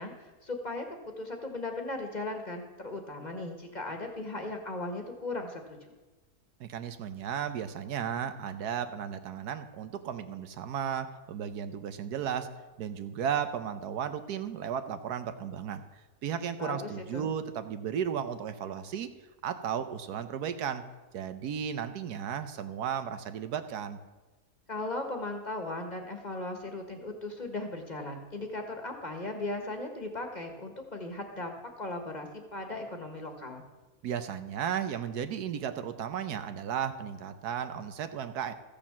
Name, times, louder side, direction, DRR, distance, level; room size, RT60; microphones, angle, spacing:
voice 1, 0.0-5.9 16.6-17.3 24.7-33.6, left 2 dB, 30° left, 4 dB, 1.5 m, -37 dB
voice 2, 6.6-12.5 12.8-15.8 16.2-19.1 19.4-20.8 21.1-24.0 34.0-38.5, right 8 dB, 80° right, 10 dB, 1.3 m, -34 dB
14.0 x 7.0 x 7.2 m, 1.2 s
omnidirectional pair, 1.7 m